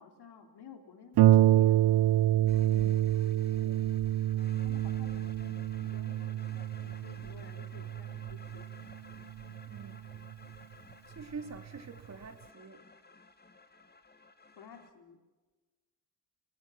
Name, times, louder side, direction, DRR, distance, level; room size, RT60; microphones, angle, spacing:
voice 1, 0.0-1.8 3.2-3.5 4.3-8.8 14.6-15.2, left 6 dB, 75° left, 3.2 m, -54 dB
Harp, 1.2-10.3 11.2-11.3 11.8-11.9, right 13 dB, 80° right, 0.7 m, -27 dB
sound 1, 2.5-14.9, left 3 dB, 25° left, 2.1 m, -55 dB
voice 2, 2.7-3.2 3.6-3.8 9.6-10.1 11.1-12.8, right 5 dB, 40° right, 2.8 m, -46 dB
27.0 x 18.0 x 6.1 m
cardioid pair, 85°, 40 cm